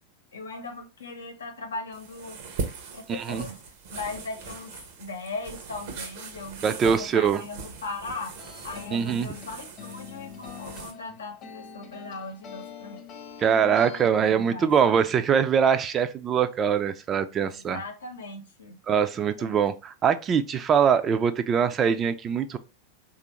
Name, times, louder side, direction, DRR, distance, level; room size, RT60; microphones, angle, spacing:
voice 1, 0.3-2.4 2.9-3.6 3.9-8.4 8.6-13.0 14.2-14.7 17.3-19.1 19.4-19.5, left 3 dB, 85° left, 0.8 m, -38 dB
sound 1, 1.9-10.9, right 5 dB, 60° right, 0.7 m, -40 dB
voice 2, 3.1-3.4 6.6-7.4 8.9-9.3 13.4-17.8 18.9-22.6, right 7 dB, 30° right, 0.4 m, -23 dB
sound 2, 8.3-14.1, left 7 dB, 40° left, 1.0 m, -44 dB
3.3 x 2.5 x 3.0 m
hypercardioid pair, 95°, 0 cm